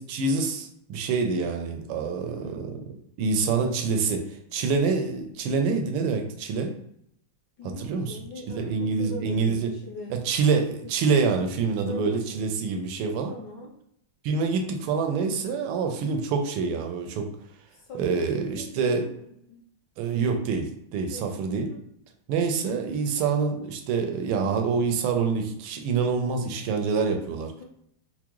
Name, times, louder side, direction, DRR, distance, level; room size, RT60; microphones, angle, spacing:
voice 1, 0.0-2.8 3.2-6.7 7.6-8.2 8.5-9.7 10.1-13.3 14.2-17.3 17.9-19.1 20.0-21.7 22.3-27.5, right 5 dB, 85° right, 4 dB, 1.5 m, -26 dB
voice 2, 2.1-2.6 7.6-10.2 10.8-10.9 11.8-12.2 13.3-13.7 17.9-19.2 19.5-19.6 21.1-21.8, left 1 dB, 70° left, -1 dB, 1.2 m, -41 dB
4.7 x 2.1 x 3.0 m, 0.71 s
omnidirectional pair, 2.3 m